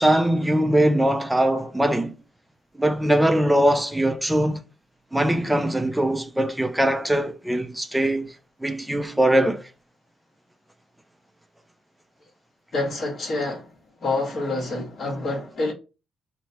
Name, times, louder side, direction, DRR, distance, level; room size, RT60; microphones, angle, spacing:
voice 1, 0.0-2.1 2.8-4.6 5.1-8.3 8.6-9.6, right 1 dB, 5° right, 0.4 m, -21 dB
voice 2, 12.7-13.7 14.0-15.7, left 2 dB, 50° left, 1.3 m, -27 dB
3.0 x 2.1 x 2.8 m
cardioid pair, 90°, 0 cm